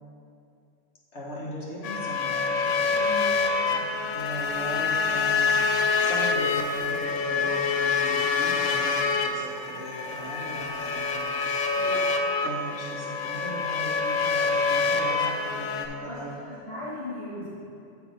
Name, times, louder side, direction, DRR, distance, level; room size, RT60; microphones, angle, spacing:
voice 1, 1.1-3.3 3.6-3.8 4.1-5.6 6.0-11.2 12.4-16.3 17.4-17.5, equal, 65° left, -6 dB, 1.6 m, -38 dB
sound 1, 1.8-15.9, left 4 dB, 85° left, 1.0 m, -26 dB
voice 2, 11.8-12.2 16.0-16.2 16.4-17.4, left 1 dB, 35° left, -11 dB, 1.7 m, -37 dB
6.9 x 4.8 x 5.4 m, 2.6 s
omnidirectional pair, 1.2 m